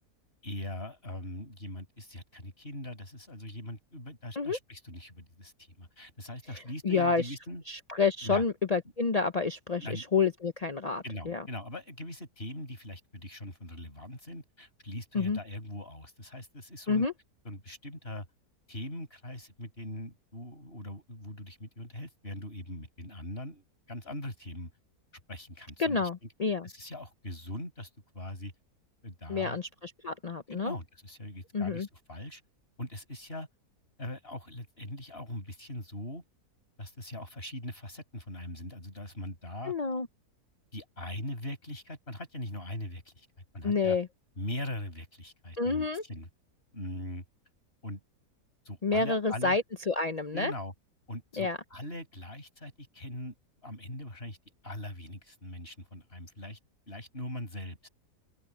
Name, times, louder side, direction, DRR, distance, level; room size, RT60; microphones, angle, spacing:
voice 1, 0.4-7.6 8.2-8.4 9.8-10.0 11.0-17.1 17.4-18.3 18.7-24.7 25.3-26.1 26.6-28.5 29.0-29.6 30.5-32.4 32.8-33.5 34.0-36.2 36.8-39.7 40.7-43.3 43.5-44.0 44.4-46.3 46.7-47.2 47.8-48.0 48.6-49.6 50.3-50.7 51.1-53.3 53.6-54.4 54.6-56.6 56.9-57.9, left 1 dB, 35° left, 6.1 m, -41 dB
voice 2, 6.8-7.3 7.7-11.4 15.1-15.4 16.9-17.1 25.8-26.7 29.3-30.8 31.5-31.9 39.7-40.1 43.6-44.1 45.6-46.0 48.8-50.5 51.4-51.6, left 4 dB, 65° left, 0.3 m, -29 dB
open air
omnidirectional pair, 1.7 m